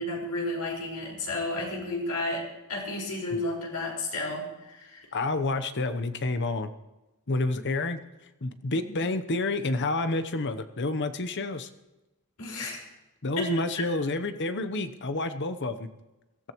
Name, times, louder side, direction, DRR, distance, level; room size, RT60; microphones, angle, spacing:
voice 1, 0.0-5.0 8.7-9.0 12.4-12.8 13.4-13.9, left 2 dB, 80° left, -2 dB, 5.0 m, -32 dB
voice 2, 5.1-6.7 7.3-8.0 8.4-11.7 13.2-15.9, left 2 dB, 55° left, 10 dB, 0.9 m, -29 dB
23.0 x 14.5 x 3.1 m, 1.0 s
head